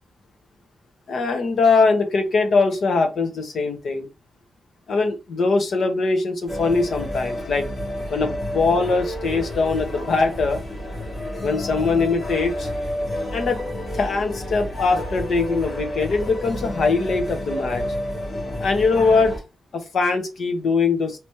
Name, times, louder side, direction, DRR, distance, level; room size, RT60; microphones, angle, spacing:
voice 1, 1.1-4.1 4.9-7.7 8.1-10.6 11.4-12.7 13.3-13.6 13.9-17.8 18.6-19.3 19.7-21.2, left 4 dB, 60° left, 5 dB, 1.2 m, -21 dB
sound 1, 6.5-19.4, left 1 dB, 30° left, 2.1 m, -30 dB
5.1 x 3.0 x 3.1 m, 0.27 s
wide cardioid pair, 170°, 0 cm